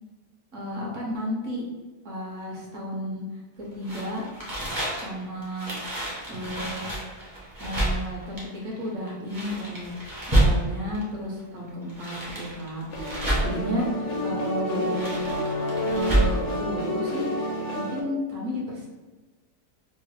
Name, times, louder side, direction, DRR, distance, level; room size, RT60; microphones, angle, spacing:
voice 1, 0.5-1.6 2.0-3.2 3.6-4.2 5.0-5.8 6.3-6.9 7.6-9.9 10.3-12.8 13.4-15.3 15.9-17.3 17.7-18.9, left 1 dB, 60° right, -3 dB, 1.0 m, -32 dB
sound 1, 3.8-11.0 11.7-13.7 14.7-16.4, right 1 dB, 25° right, 0.4 m, -28 dB
sound 2, 12.9-18.0, equal, 75° left, 1.1 m, -29 dB
3.1 x 2.0 x 3.1 m, 1.3 s
omnidirectional pair, 1.7 m